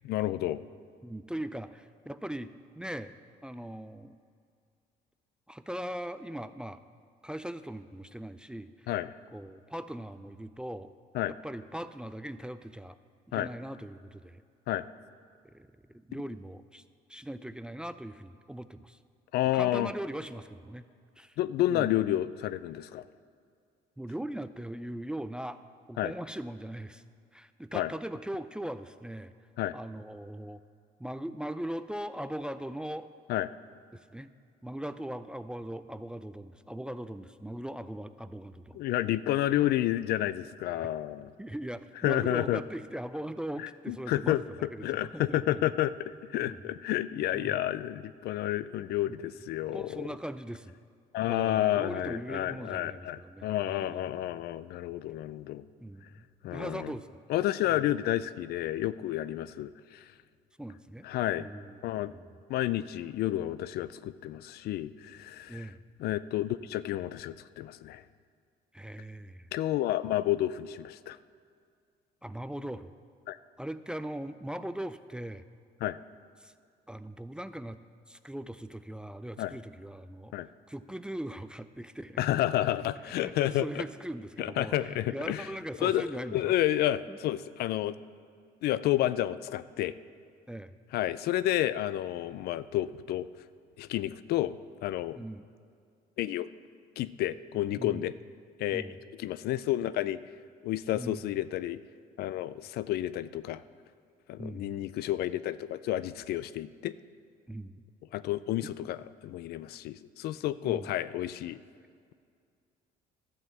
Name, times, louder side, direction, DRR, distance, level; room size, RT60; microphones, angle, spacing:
voice 1, 0.0-0.6 8.9-9.1 11.1-11.3 13.3-13.5 14.7-14.9 19.3-19.9 21.4-23.1 26.0-26.1 27.7-27.9 29.6-29.8 33.3-33.5 38.8-41.3 42.0-42.6 43.6-44.4 44.8-50.1 51.1-55.6 56.4-56.9 57.3-60.0 61.0-61.5 61.8-62.1 62.5-65.7 66.0-68.0 69.5-71.2 73.3-73.4 75.8-76.0 79.4-79.5 80.3-80.5 82.2-83.8 84.4-85.5 85.8-88.0 88.6-89.9 90.9-93.3 93.8-94.5 94.8-95.2 96.2-96.5 97.0-98.1 98.6-98.9 99.2-100.2 100.6-101.8 102.2-103.6 104.3-106.9 108.1-111.6, left 13 dB, 70° left, 16 dB, 0.4 m, -30 dB
voice 2, 1.0-3.1 3.4-4.2 5.5-6.8 7.2-8.9 9.3-10.9 11.3-13.0 13.3-14.4 15.4-16.8 17.1-19.0 19.5-20.9 21.2-21.4 21.7-22.1 24.0-25.6 25.9-27.0 27.3-29.3 29.7-30.6 31.0-33.1 33.9-34.3 34.6-38.8 41.4-45.7 46.4-46.7 47.3-47.6 49.1-49.2 49.7-50.8 51.3-54.1 54.3-54.4 55.8-57.2 57.7-58.0 60.6-61.1 61.4-61.8 62.1-62.2 65.5-65.8 68.7-69.5 72.2-72.9 73.6-75.4 76.4-76.5 76.9-77.8 78.1-80.3 80.7-82.3 83.2-86.5 87.1-87.2 90.5-90.7 95.1-95.5 97.8-98.0 98.7-99.0 100.9-101.2 104.4-104.7 107.5-107.8 108.6-108.7 110.6-110.9, right 1 dB, 5° right, 12 dB, 0.3 m, -40 dB
12.0 x 5.7 x 7.8 m, 2.2 s
cardioid pair, 110°, 17 cm